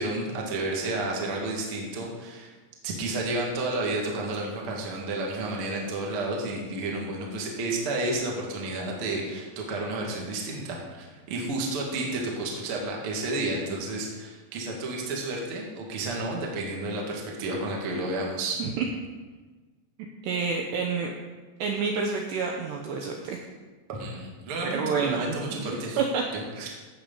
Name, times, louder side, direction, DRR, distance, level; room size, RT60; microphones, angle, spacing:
voice 1, 0.0-2.5 2.8-18.6 23.9-26.0 26.3-26.7, right 2 dB, 50° right, -1 dB, 1.6 m, -31 dB
voice 2, 20.2-21.1 21.6-23.4 24.6-26.2, right 5 dB, 80° right, 1 dB, 2.5 m, -29 dB
16.0 x 6.6 x 5.5 m, 1.3 s
omnidirectional pair, 5.8 m